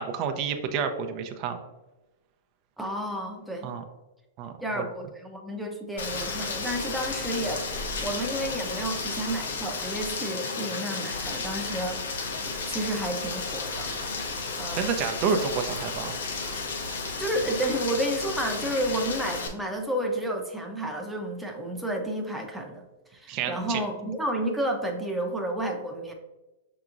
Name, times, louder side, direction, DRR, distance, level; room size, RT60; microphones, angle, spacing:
voice 1, 0.0-1.6 3.6-3.8 4.4-4.8 14.7-16.2 23.3-23.8, right 6 dB, 40° right, 6 dB, 0.6 m, -29 dB
voice 2, 2.8-3.8 4.6-7.6 8.0-13.9 14.6-14.9 17.2-22.8 23.1-26.1, right 1 dB, 5° right, 1 dB, 0.7 m, -31 dB
Rain, 6.0-19.5, left 4 dB, 80° left, 0.8 m, -33 dB
5.8 x 2.9 x 2.5 m, 1.0 s
hypercardioid pair, 120°, 0 cm